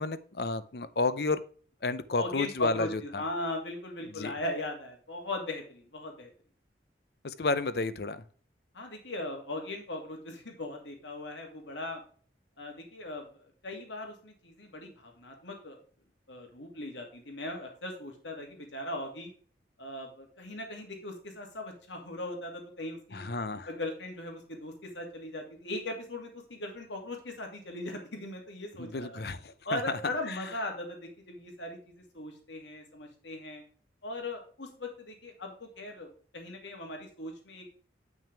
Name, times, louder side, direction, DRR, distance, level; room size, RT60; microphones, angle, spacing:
voice 1, 0.0-1.4 1.8-3.2 4.2-4.3 7.2-8.2 23.1-23.7 28.8-29.8, left 3 dB, 60° left, 14 dB, 0.6 m, -31 dB
voice 2, 2.2-6.3 8.7-12.0 12.6-15.8 16.3-19.3 19.8-23.3 23.7-29.2 29.6-33.6 34.0-37.7, left 1 dB, 85° left, 2 dB, 2.6 m, -39 dB
8.8 x 6.2 x 3.4 m, 0.43 s
head